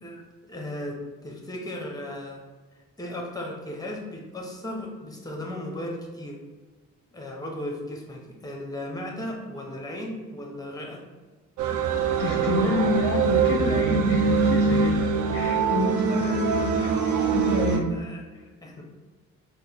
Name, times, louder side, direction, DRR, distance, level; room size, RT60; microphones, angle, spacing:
voice 1, 0.0-2.4 3.0-6.4 7.1-11.0 17.9-18.8, left 1 dB, 10° left, 0 dB, 0.7 m, -36 dB
sound 1, 11.6-17.8, right 5 dB, 80° right, 0.5 m, -23 dB
voice 2, 12.2-15.0 15.3-17.0 17.3-17.9, left 2 dB, 50° left, 1 dB, 0.5 m, -28 dB
4.2 x 2.2 x 3.4 m, 1.3 s
cardioid pair, 90°, 30 cm